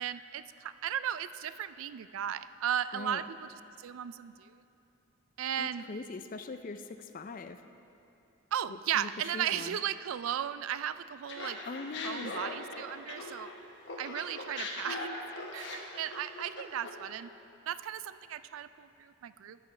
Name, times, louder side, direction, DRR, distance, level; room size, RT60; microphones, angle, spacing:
voice 1, 0.0-3.5 3.8-4.5 5.4-5.9 8.5-11.6 12.0-13.5 14.0-15.2 15.5-17.3 17.7-19.6, right 9 dB, 70° right, 14 dB, 0.3 m, -35 dB
voice 2, 2.9-3.2 5.6-7.6 8.7-9.8 11.7-12.3, left 3 dB, 40° left, 9 dB, 0.4 m, -42 dB
Laughter, 11.3-13.6 13.9-17.1, left 2 dB, 55° left, 1.2 m, -40 dB
14.0 x 10.5 x 3.3 m, 2.8 s
head